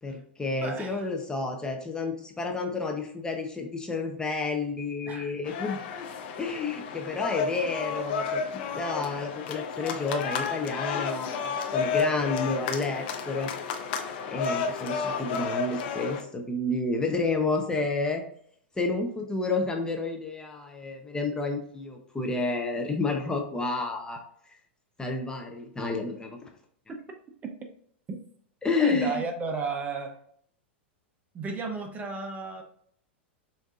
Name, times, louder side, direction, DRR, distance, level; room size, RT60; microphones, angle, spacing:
voice 1, 0.0-5.8 6.4-8.4 8.7-13.5 14.3-18.2 18.8-24.2 24.5-24.6 25.0-26.5 28.6-29.2, left 3 dB, 10° left, 2 dB, 0.7 m, -30 dB
voice 2, 0.6-1.1 5.1-5.3 26.9-27.0 27.4-27.5 28.8-30.2 31.3-32.6, right 4 dB, 25° right, 4 dB, 0.7 m, -33 dB
sound 1, 5.4-16.2, left 5 dB, 60° left, 0.6 m, -32 dB
6.1 x 2.6 x 2.4 m, 0.63 s
hypercardioid pair, 110°, 6 cm